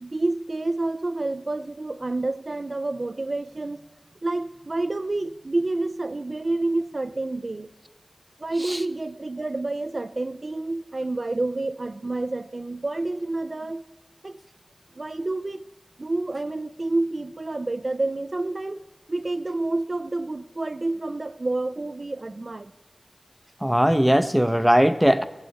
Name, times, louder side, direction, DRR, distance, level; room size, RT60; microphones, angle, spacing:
voice 1, 0.0-3.8 4.2-7.7 8.4-13.8 14.2-14.4 15.0-15.7 16.0-18.8 19.1-22.7, right 2 dB, 60° right, 0.3 m, -28 dB
voice 2, 23.6-25.2, equal, 5° right, 0.5 m, -19 dB
17.0 x 7.9 x 4.0 m
wide cardioid pair, 45°, 0 cm